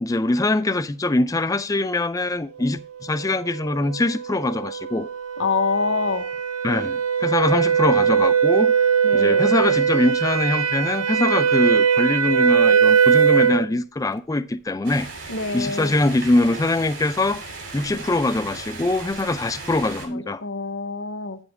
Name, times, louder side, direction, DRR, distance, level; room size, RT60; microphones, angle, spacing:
voice 1, 0.0-5.1 6.6-15.1 15.5-17.4 17.7-20.4, left 2 dB, 15° left, 0.3 m, -23 dB
sound 1, 3.7-13.7, right 7 dB, 85° right, 0.6 m, -20 dB
voice 2, 5.4-6.2 9.0-9.5 15.3-15.9 20.1-21.4, left 4 dB, 65° left, 0.9 m, -26 dB
sound 2, 14.8-20.1, right 3 dB, 65° right, 2.6 m, -37 dB
8.8 x 7.0 x 3.4 m
head